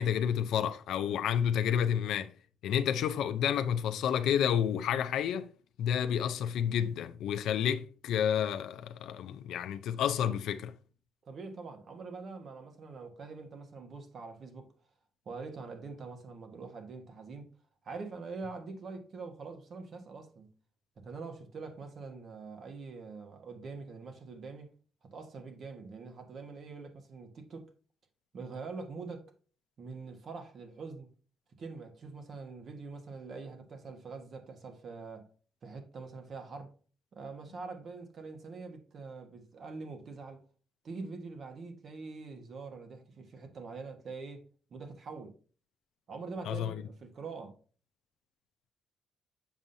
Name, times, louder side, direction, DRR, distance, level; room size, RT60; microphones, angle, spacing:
voice 1, 0.0-2.3 2.6-5.5 5.8-10.7 46.5-46.8, left 9 dB, 80° left, 0.5 m, -30 dB
voice 2, 11.2-14.7 15.2-17.5 17.8-20.5 21.0-24.7 25.0-27.7 28.3-29.2 29.8-31.1 31.6-35.3 35.6-36.7 37.1-40.4 40.8-44.4 44.7-45.3 46.1-47.6, right 4 dB, 55° right, 1.3 m, -44 dB
7.2 x 5.5 x 2.7 m
cardioid pair, 90°, 0 cm